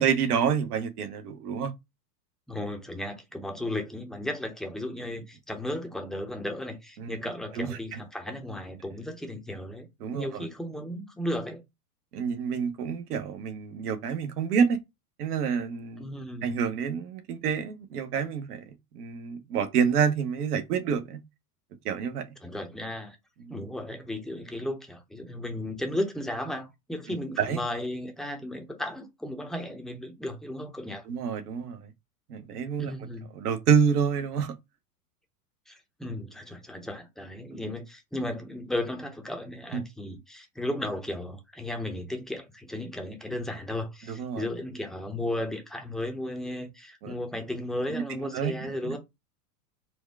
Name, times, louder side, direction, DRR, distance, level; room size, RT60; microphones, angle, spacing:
voice 1, 0.0-1.7 7.0-7.2 7.6-8.0 10.0-10.5 12.1-14.8 15.2-16.0 16.4-21.2 21.8-22.2 23.4-23.5 27.4-27.6 31.1-31.9 32.3-32.9 33.3-34.5 39.7-39.8 44.1-44.5 47.0-47.1 47.9-48.0 48.3-49.0, right 7 dB, 70° right, 1.0 m, -28 dB
voice 2, 2.5-9.9 10.1-11.6 16.0-16.5 22.4-23.2 23.5-31.0 32.8-33.3 35.7-49.0, left 1 dB, ahead, 0.7 m, -35 dB
4.4 x 2.2 x 3.4 m
hypercardioid pair, 105°, 48 cm